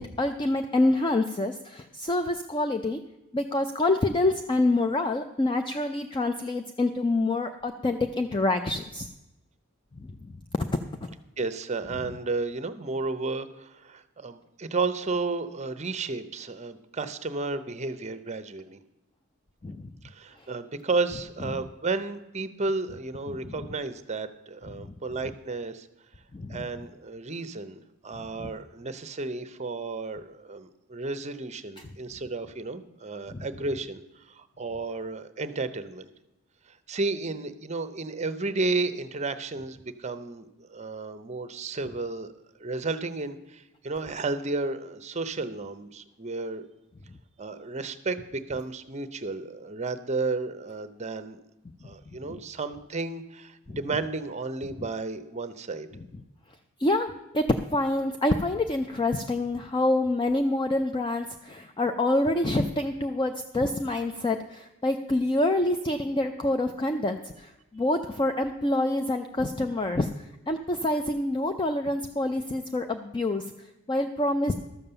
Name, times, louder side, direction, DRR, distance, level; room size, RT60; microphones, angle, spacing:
voice 1, 0.0-3.0 3.3-9.1 10.0-10.6 11.0-11.1 19.6-19.9 20.4-20.5 23.3-23.5 24.7-24.9 26.3-26.7 28.2-28.5 31.8-31.9 33.3-33.5 52.3-52.4 53.7-53.8 55.9-56.0 56.8-57.4 57.7-74.5, left 2 dB, 20° left, 7 dB, 0.5 m, -27 dB
voice 2, 11.4-18.8 20.0-25.9 26.5-36.1 36.7-42.3 42.6-46.6 47.4-51.4 51.8-55.9, right 3 dB, 30° right, 13 dB, 0.7 m, -32 dB
13.0 x 7.2 x 6.8 m, 0.96 s
head